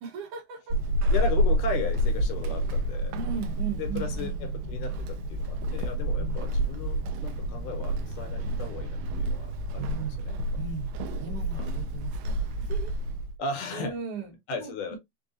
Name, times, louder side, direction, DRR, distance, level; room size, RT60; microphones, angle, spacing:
voice 1, 0.0-0.8 3.1-4.4 6.2-6.4 9.8-10.2 10.5-10.9 11.2-12.9 13.7-15.0, right 6 dB, 65° right, 2.8 m, -37 dB
Walk footsteps / Squeak, 0.7-13.4, right 1 dB, 85° right, 2.2 m, -29 dB
voice 2, 1.1-3.2 3.8-9.9 10.2-10.4 11.5-11.7 13.4-13.9 14.5-15.0, left 4 dB, 75° left, 2.3 m, -36 dB
6.0 x 2.3 x 2.6 m
omnidirectional pair, 3.8 m